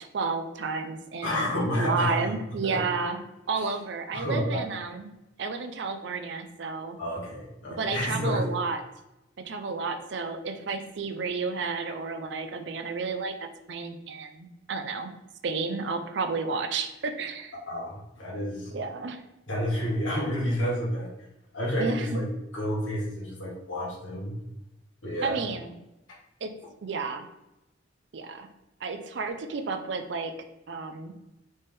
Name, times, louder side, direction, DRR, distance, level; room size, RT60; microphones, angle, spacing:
voice 1, 0.1-1.5 1.8-3.2 3.5-5.1 5.4-7.0 7.7-8.8 9.4-15.1 15.4-17.5 18.7-19.2 21.8-22.1 25.2-25.8 26.4-26.5 26.8-27.3 28.1-28.5 28.8-30.3 30.7-31.1, right 4 dB, 65° right, 7 dB, 0.5 m, -31 dB
voice 2, 1.2-2.2 2.7-2.8 4.1-4.6 7.0-8.5 17.7-18.7 19.5-21.1 21.5-22.3 22.5-24.3 25.0-25.4, equal, 85° left, -4 dB, 1.5 m, -29 dB
4.1 x 3.5 x 3.5 m, 0.93 s
head